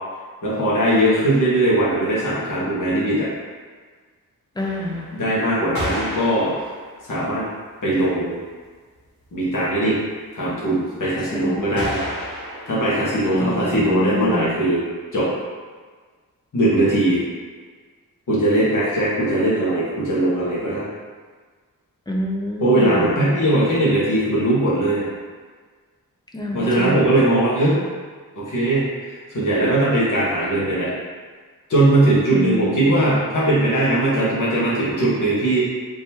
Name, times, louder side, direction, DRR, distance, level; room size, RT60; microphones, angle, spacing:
voice 1, 0.4-3.3 5.1-6.5 7.0-7.4 7.8-8.4 9.3-10.0 10.3-12.0 12.7-14.8 15.1-15.3 16.5-17.2 18.3-20.9 22.6-25.1 26.5-27.8 28.3-30.9 31.7-35.6, right 1 dB, 60° left, -8 dB, 1.3 m, -20 dB
sound 1, 4.6-7.4 8.0-8.1 8.3-8.4 8.6-8.7 9.0-9.4 11.8-13.7, equal, 75° left, 1.5 m, -32 dB
voice 2, 4.6-5.1 11.3-11.9 13.3-14.5 22.1-23.2 26.3-27.2 32.3-33.1, left 1 dB, 10° left, -1 dB, 0.4 m, -27 dB
3.5 x 3.0 x 2.9 m, 1.5 s
wide cardioid pair, 140°, 35 cm